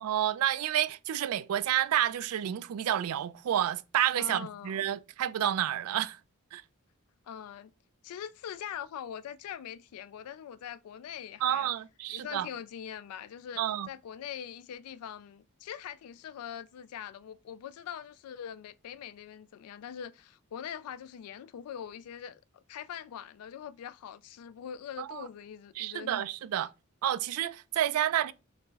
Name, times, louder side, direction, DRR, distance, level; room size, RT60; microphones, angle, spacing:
voice 1, 0.0-6.2 6.5-6.6 11.4-12.5 13.6-13.9 25.0-25.2 25.8-26.7 27.0-28.3, right 11 dB, 80° right, 0.3 m, -30 dB
voice 2, 4.1-4.9 7.3-7.7 8.0-11.7 12.1-26.3, left 9 dB, 90° left, 0.3 m, -43 dB
4.4 x 2.0 x 3.9 m
head